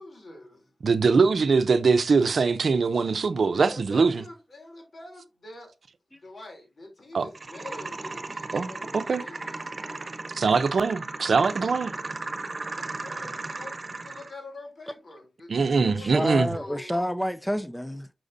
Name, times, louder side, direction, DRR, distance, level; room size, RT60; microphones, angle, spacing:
voice 1, 0.0-0.7 3.5-5.7 6.2-10.1 12.6-17.0, left 1 dB, 65° left, 3.3 m, -45 dB
voice 2, 0.8-4.2 7.1-7.3 8.5-9.2 10.3-11.9 15.5-16.5, right 4 dB, 80° right, 0.6 m, -22 dB
sound 1, 7.3-14.3, right 3 dB, 50° right, 1.0 m, -36 dB
voice 3, 15.6-18.1, equal, 5° left, 0.5 m, -29 dB
6.4 x 6.2 x 2.6 m
cardioid pair, 55°, 0 cm